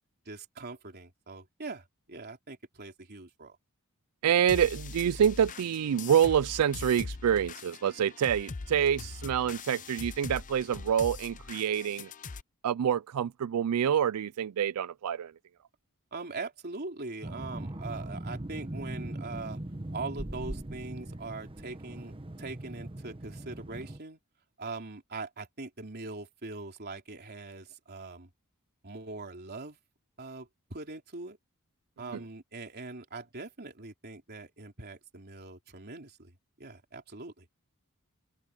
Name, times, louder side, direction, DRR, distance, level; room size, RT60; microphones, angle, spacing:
voice 1, 0.2-3.6 16.1-19.6 19.9-24.2 24.6-28.3 28.8-29.8 30.2-31.4 32.0-36.3 36.6-37.5, right 3 dB, 45° right, 3.4 m, -42 dB
voice 2, 4.2-12.1 12.6-15.3, right 8 dB, 85° right, 0.4 m, -27 dB
sound 1, 4.5-12.4, left 4 dB, 35° left, 0.6 m, -42 dB
sound 2, 17.2-24.0, right 1 dB, 25° right, 1.1 m, -40 dB
open air
head